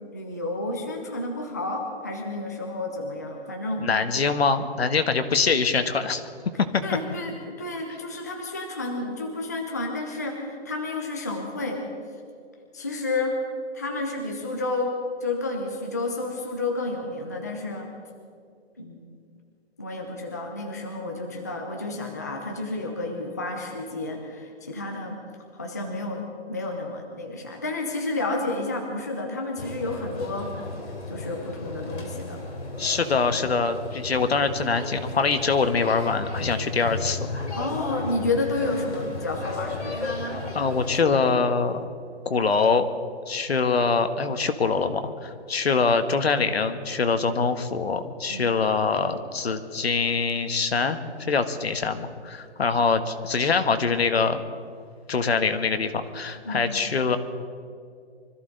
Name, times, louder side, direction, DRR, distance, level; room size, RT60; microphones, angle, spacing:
voice 1, 0.0-3.9 6.8-11.8 12.7-13.3 13.7-17.9 18.8-19.0 19.8-25.2 25.5-30.5 31.1-32.4 33.4-33.5 37.6-40.1 48.3-48.6 56.4-56.7, left 2 dB, 15° left, 1 dB, 0.6 m, -31 dB
voice 2, 3.8-6.2 6.7-6.8 32.8-37.2 40.5-41.9 42.2-42.9 43.3-51.0 51.3-54.4 55.1-57.2, left 4 dB, 65° left, 9 dB, 1.5 m, -24 dB
sound 1, 29.6-41.0, left 2 dB, 80° left, 3.7 m, -34 dB
24.5 x 14.0 x 3.9 m, 2.3 s
hypercardioid pair, 170°, 34 cm